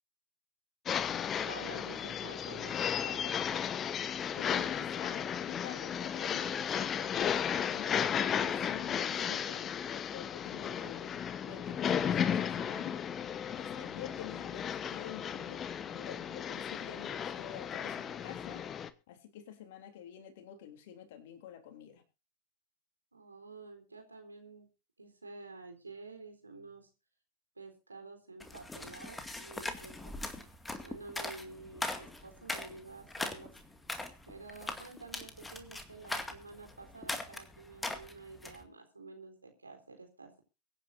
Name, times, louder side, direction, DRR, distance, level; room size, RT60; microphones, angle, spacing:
sound 1, 0.9-18.9, left 8 dB, 25° left, 1.0 m, -34 dB
voice 1, 1.4-3.4 23.1-24.7 25.0-26.9 27.6-30.2 30.8-33.6 34.3-40.4, right 3 dB, 85° right, 5 dB, 3.9 m, -50 dB
voice 2, 4.3-7.1 7.6-9.7 10.1-13.0 13.5-15.6 15.9-18.7 19.1-22.0, left 9 dB, 55° left, 7 dB, 3.2 m, -49 dB
sound 2, 28.4-38.6, left 2 dB, 10° left, 2.1 m, -41 dB
23.5 x 9.9 x 2.7 m, 0.31 s
figure-of-eight pair, 95°, 0 cm